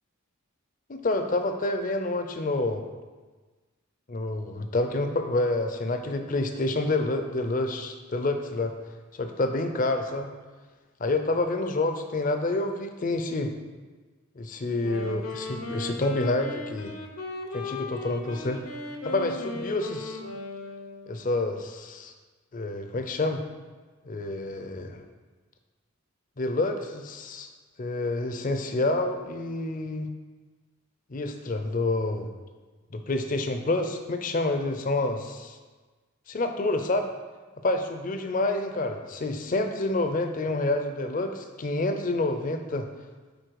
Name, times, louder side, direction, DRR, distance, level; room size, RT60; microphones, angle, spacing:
voice 1, 0.9-2.8 4.1-8.7 9.1-10.3 11.0-13.5 14.4-16.9 17.5-18.6 19.0-20.2 21.1-22.1 22.5-23.4 24.1-25.0 26.4-27.5 27.8-30.1 31.1-32.3 32.9-35.6 36.3-37.1 37.6-42.9, left 2 dB, 40° left, 6 dB, 0.5 m, -28 dB
Wind instrument woodwind instrument, 14.7-21.2, left 2 dB, 75° left, 0.9 m, -36 dB
7.8 x 4.1 x 4.7 m, 1.3 s
head